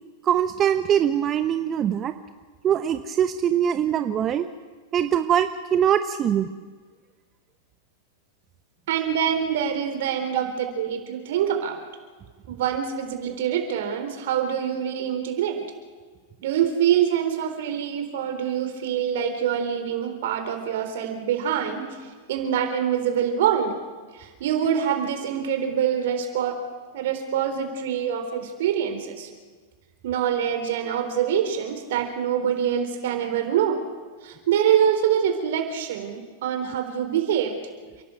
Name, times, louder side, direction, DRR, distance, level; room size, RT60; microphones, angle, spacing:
voice 1, 0.2-2.1 2.6-4.5 4.9-6.5 10.3-10.5, right 9 dB, 30° right, 9 dB, 1.0 m, -22 dB
voice 2, 8.9-11.8 12.5-15.6 16.4-21.9 22.3-23.8 24.1-26.6 26.9-29.3 30.0-33.8 34.2-37.6, right 9 dB, 65° right, 7 dB, 3.9 m, -25 dB
29.5 x 11.5 x 8.1 m, 1.5 s
hypercardioid pair, 105°, 0 cm